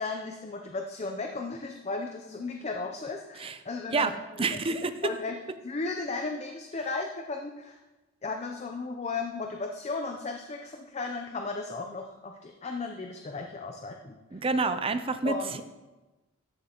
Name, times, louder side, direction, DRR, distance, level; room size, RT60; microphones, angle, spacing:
voice 1, 0.0-4.8 5.0-5.4 5.6-7.8 8.2-14.2 15.2-15.6, left 3 dB, 30° left, 3 dB, 0.5 m, -35 dB
voice 2, 4.4-4.9 14.3-15.6, right 4 dB, 25° right, 10 dB, 0.5 m, -28 dB
13.0 x 7.3 x 2.9 m, 1.1 s
head